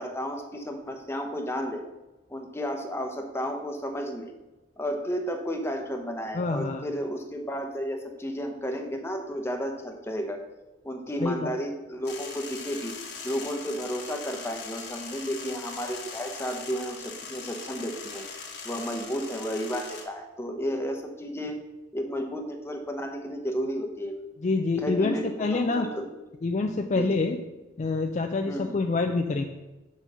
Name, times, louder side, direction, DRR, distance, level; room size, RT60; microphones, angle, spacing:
voice 1, 0.0-1.8 2.3-4.3 4.8-10.4 10.8-12.9 13.2-18.2 18.6-21.6 21.9-24.1 24.8-25.2 25.5-26.0 26.9-27.3 28.5-28.8, equal, 15° left, 4 dB, 0.8 m, -32 dB
voice 2, 6.3-6.8 11.2-11.5 24.4-25.9 26.4-27.4 27.8-29.4, left 3 dB, 40° left, 5 dB, 0.4 m, -26 dB
sound 1, 12.1-20.0, left 5 dB, 60° left, 1.4 m, -40 dB
5.7 x 5.3 x 6.2 m, 1.1 s
head